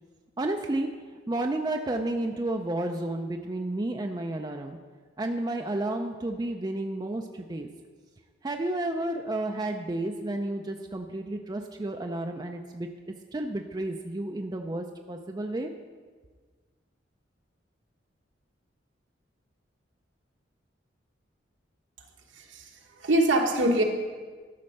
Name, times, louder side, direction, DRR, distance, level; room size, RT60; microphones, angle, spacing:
voice 1, 0.4-0.9 1.3-4.8 5.2-7.7 8.4-15.7, right 1 dB, 20° right, 4 dB, 0.4 m, -31 dB
voice 2, 22.3-23.8, right 1 dB, 75° right, 1 dB, 1.3 m, -24 dB
12.5 x 4.3 x 6.5 m, 1.5 s
head